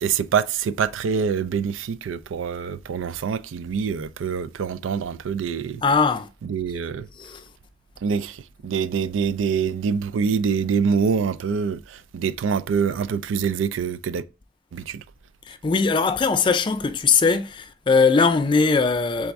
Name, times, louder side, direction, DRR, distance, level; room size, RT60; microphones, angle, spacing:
voice 1, 0.0-5.8 6.4-7.1 8.0-14.2 14.7-15.0, right 6 dB, 85° right, 0.3 m, -25 dB
voice 2, 5.8-6.3 7.2-7.5 15.5-19.3, left 4 dB, 25° left, 0.3 m, -20 dB
4.1 x 3.4 x 3.4 m
head